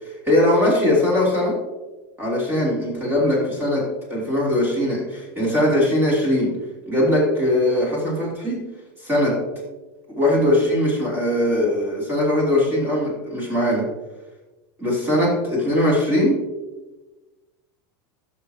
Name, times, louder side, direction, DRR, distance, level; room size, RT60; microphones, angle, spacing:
voice 1, 0.2-1.6 2.2-3.8 4.1-6.5 6.9-8.6 9.0-9.4 10.1-13.8 14.8-16.4, left 1 dB, 15° right, -4 dB, 3.0 m, -20 dB
13.5 x 6.4 x 2.9 m, 1.1 s
supercardioid pair, 135°, 14 cm